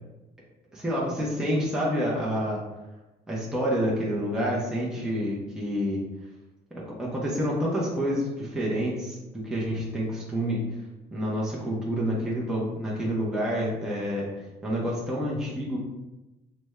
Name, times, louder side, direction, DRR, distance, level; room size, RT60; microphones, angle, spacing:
voice 1, 0.7-2.6 3.3-6.0 6.7-9.2 9.4-10.6 11.1-14.3 14.6-15.8, equal, 5° right, -5 dB, 0.6 m, -28 dB
3.3 x 2.1 x 3.3 m, 1.0 s
cardioid pair, 130°, 17 cm